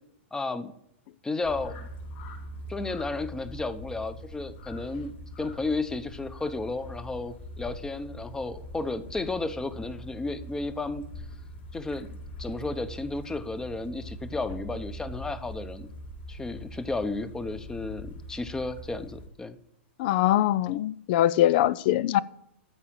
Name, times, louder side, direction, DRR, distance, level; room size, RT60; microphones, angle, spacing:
voice 1, 0.3-0.7 1.2-1.9 2.7-11.0 11.7-12.1 12.4-15.9 16.3-19.6, left 3 dB, 10° left, 0.8 m, -33 dB
sound 1, 1.4-19.3, equal, 65° left, 4.5 m, -42 dB
voice 2, 20.0-22.2, left 13 dB, 50° left, 0.4 m, -23 dB
13.0 x 4.9 x 8.8 m
hypercardioid pair, 125°, 7 cm